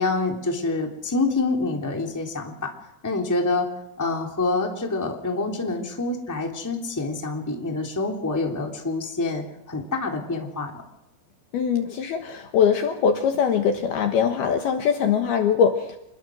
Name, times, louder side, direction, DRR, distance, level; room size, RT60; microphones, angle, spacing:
voice 1, 0.0-2.7 3.0-3.7 4.0-10.8, left 3 dB, 5° left, 1 dB, 2.3 m, -26 dB
voice 2, 11.5-16.0, left 7 dB, 65° left, 5 dB, 2.9 m, -22 dB
28.5 x 21.5 x 6.3 m, 0.86 s
omnidirectional pair, 5.4 m